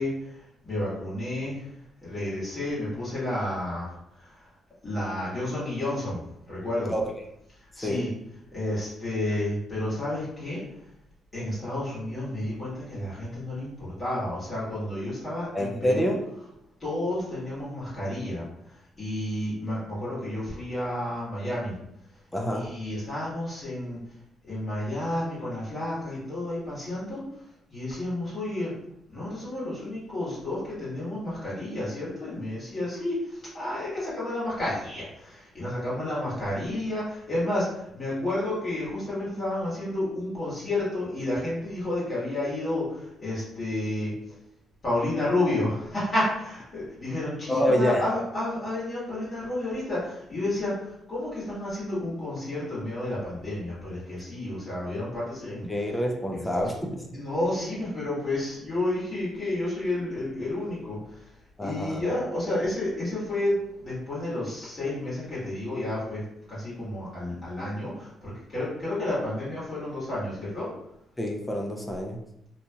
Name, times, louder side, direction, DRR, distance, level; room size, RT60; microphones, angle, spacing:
voice 1, 0.0-1.7 2.0-4.5 4.8-6.9 7.7-8.1 8.5-10.6 11.3-16.2 16.8-21.7 22.5-24.0 24.4-28.7 29.1-44.1 44.8-55.7 56.3-56.7 57.1-61.3 61.6-70.7, left 1 dB, 35° left, -9 dB, 1.4 m, -31 dB
voice 2, 15.5-16.2 22.3-22.7 47.5-48.0 55.7-56.7 61.6-62.0 71.2-72.2, equal, 15° left, 1 dB, 0.4 m, -26 dB
2.8 x 2.3 x 2.7 m, 0.79 s
cardioid pair, 90°, 0 cm